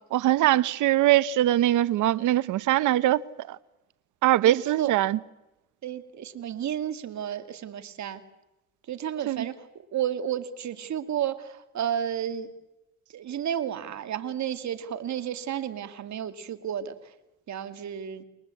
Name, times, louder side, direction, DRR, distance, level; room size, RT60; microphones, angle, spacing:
voice 1, 0.1-3.2 3.5-3.6 4.2-5.2 9.3-9.5, right 14 dB, 85° right, 1.0 m, -22 dB
voice 2, 4.5-4.9 5.8-8.2 8.9-9.5 9.9-12.5 13.1-16.9 17.5-18.2, right 10 dB, 65° right, 2.5 m, -32 dB
30.0 x 22.0 x 8.5 m
cardioid pair, 90°, 30 cm